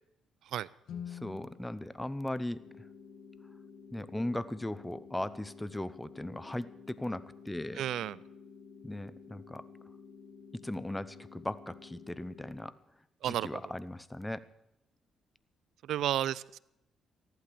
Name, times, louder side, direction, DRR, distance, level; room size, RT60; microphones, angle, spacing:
Guitar, 0.8-3.4, left 8 dB, 75° left, 1.9 m, -48 dB
voice 1, 1.1-2.6 3.9-7.8 8.8-9.6 10.6-12.7 13.2-14.4, left 1 dB, 10° left, 16 dB, 0.7 m, -38 dB
sound 1, 2.5-12.5, left 5 dB, 45° left, 2.5 m, -52 dB
voice 2, 7.8-8.2 13.2-13.6 15.9-16.6, right 12 dB, 75° right, 21 dB, 0.4 m, -32 dB
14.5 x 11.5 x 6.9 m, 0.83 s
cardioid pair, 90°, 0 cm